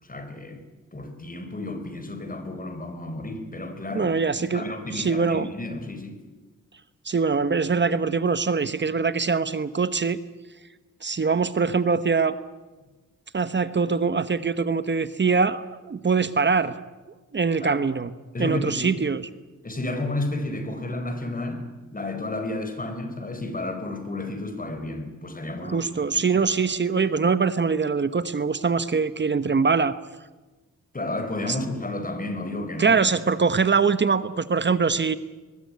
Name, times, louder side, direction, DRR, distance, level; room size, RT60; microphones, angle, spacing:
voice 1, 0.0-0.6 0.9-4.1 4.4-6.2 17.6-17.8 18.3-19.0 19.6-21.7 21.9-25.8 26.1-26.4 30.9-33.0, left 2 dB, 30° left, 8 dB, 4.4 m, -32 dB
voice 2, 3.9-4.6 4.9-5.5 7.0-10.2 11.0-12.4 13.3-16.7 17.3-18.1 18.4-19.2 25.6-29.9 31.5-31.6 32.8-35.2, right 5 dB, 35° right, 13 dB, 1.0 m, -23 dB
23.5 x 21.0 x 9.6 m, 1.2 s
wide cardioid pair, 115°, 30 cm